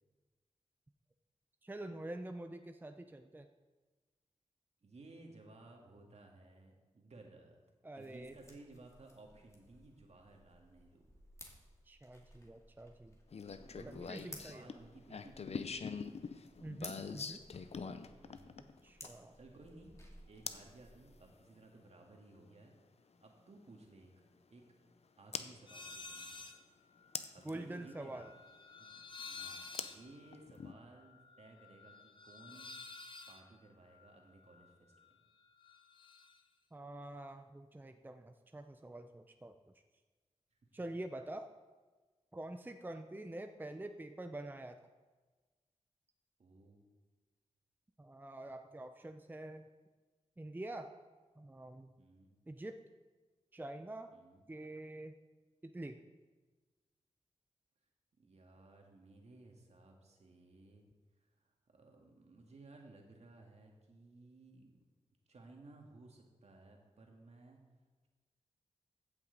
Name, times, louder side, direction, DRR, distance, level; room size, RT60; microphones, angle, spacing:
voice 1, 1.6-3.5 7.8-8.3 11.9-13.2 13.9-14.7 16.6-17.4 18.8-19.4 27.4-28.3 36.7-39.5 40.7-41.5 42.3-44.8 48.0-49.6 50.4-50.9 51.4-51.9 52.5-52.8 53.5-54.1 54.5-55.1 55.6-56.0, right 1 dB, 15° right, 7 dB, 0.5 m, -46 dB
voice 2, 4.8-7.6 7.9-11.1 13.7-15.8 18.1-18.6 19.1-19.9 20.3-22.7 23.2-24.2 24.5-24.7 25.2-26.5 27.3-28.3 28.8-32.7 33.3-35.2 40.5-40.6 46.4-46.9 52.0-52.3 54.1-54.4 58.2-60.9 61.2-64.9 65.3-67.6, right 2 dB, 60° right, 1 dB, 1.9 m, -58 dB
sound 1, 8.0-21.3, left 1 dB, 25° left, 2.1 m, -58 dB
sound 2, 13.3-19.3 20.5-20.7 22.6-22.7 25.3-25.5 27.1-27.5 29.7-30.7, left 5 dB, 60° left, 0.6 m, -43 dB
sound 3, 25.7-26.6 26.9-35.1 35.4-36.4, left 4 dB, 40° left, 1.1 m, -52 dB
15.5 x 6.0 x 4.0 m, 1.3 s
cardioid pair, 50°, 12 cm